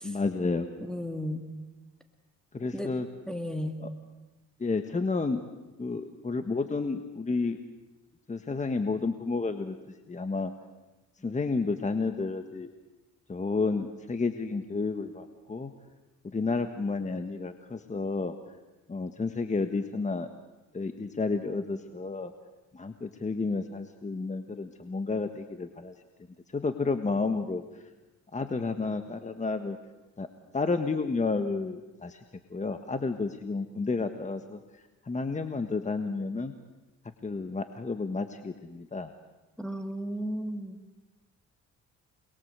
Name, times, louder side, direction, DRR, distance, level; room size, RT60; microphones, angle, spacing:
voice 1, 0.0-0.7 2.5-3.1 3.8-3.9 4.6-5.4 5.8-7.6 8.3-9.7 10.1-10.5 11.2-12.7 13.3-15.7 16.3-18.3 18.9-20.3 20.7-22.3 22.7-26.0 26.5-27.6 28.3-29.8 30.2-30.3 30.5-32.2 32.5-34.6 35.0-36.5 37.2-39.1, left 3 dB, 25° left, 8 dB, 1.5 m, -31 dB
voice 2, 0.8-1.5 2.7-2.9 3.3-3.8 39.6-40.8, equal, ahead, 4 dB, 2.2 m, -34 dB
28.5 x 21.5 x 8.2 m, 1.1 s
cardioid pair, 90°, 30 cm